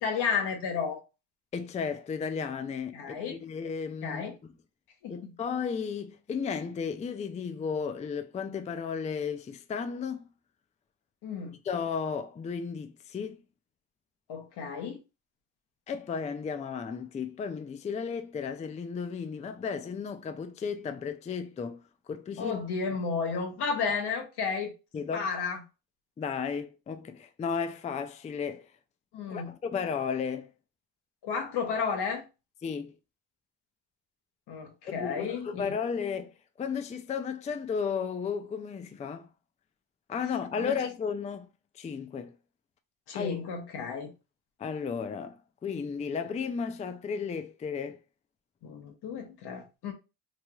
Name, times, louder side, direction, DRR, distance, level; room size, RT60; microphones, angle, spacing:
voice 1, 0.0-1.0 2.9-3.4 4.0-4.3 5.0-5.3 11.2-11.6 14.3-15.0 22.4-24.7 25.1-25.6 29.1-29.5 31.2-32.2 34.5-35.6 40.6-40.7 43.1-44.1 48.6-49.9, left 5 dB, 85° left, 1.0 m, -32 dB
voice 2, 1.5-4.5 5.1-10.2 11.6-13.4 15.9-21.8 22.1-22.6 24.9-25.3 26.2-28.7 29.3-30.5 32.6-32.9 34.9-39.3 40.1-41.5 41.7-42.3 43.1-43.4 44.6-48.0, left 6 dB, 20° left, 0.3 m, -34 dB
3.2 x 2.8 x 2.3 m
cardioid pair, 85°, 39 cm